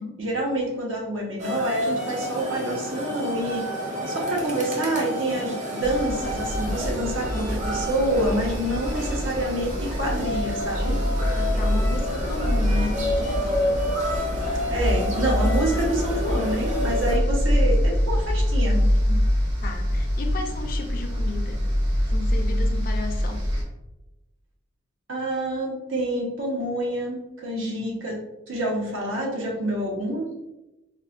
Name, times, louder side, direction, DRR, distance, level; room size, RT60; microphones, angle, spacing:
voice 1, 0.2-11.0 14.7-19.2 25.1-28.2 28.5-30.3, right 1 dB, 85° right, -2 dB, 0.9 m, -27 dB
sound 1, 1.4-17.2, equal, 40° right, 0.6 m, -30 dB
sound 2, 5.8-23.6, equal, 60° right, 1.0 m, -25 dB
voice 2, 11.4-13.7 19.6-21.6 22.1-23.4 27.6-27.9, left 3 dB, 45° left, 4 dB, 0.4 m, -33 dB
4.2 x 2.2 x 2.4 m, 0.97 s
head